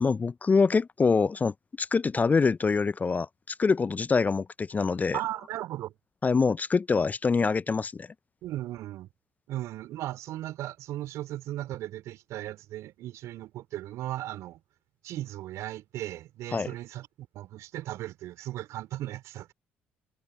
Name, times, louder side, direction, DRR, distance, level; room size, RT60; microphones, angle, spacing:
voice 1, 0.0-3.3 3.6-5.2 6.2-8.1 16.5-16.7, left 4 dB, 30° left, 0.5 m, -25 dB
voice 2, 5.1-5.9 8.4-9.1 9.5-14.6 15.0-17.1 17.3-19.5, right 14 dB, 65° right, 3.7 m, -36 dB
figure-of-eight pair, 50°, 6 cm